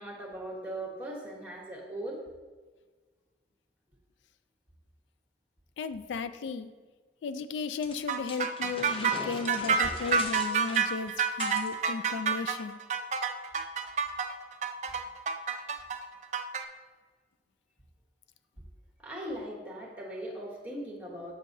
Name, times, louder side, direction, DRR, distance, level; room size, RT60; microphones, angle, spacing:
voice 1, 0.0-2.2 9.8-9.9 19.0-21.3, right 1 dB, 10° right, -2 dB, 1.1 m, -39 dB
voice 2, 5.8-6.7 7.2-11.1 11.4-12.8, left 5 dB, 90° left, 11 dB, 0.3 m, -35 dB
sound 1, 7.8-11.7, left 2 dB, 30° left, 0.6 m, -41 dB
sound 2, 8.1-16.6, right 6 dB, 40° right, 0.3 m, -29 dB
7.2 x 6.4 x 2.6 m, 1.4 s
head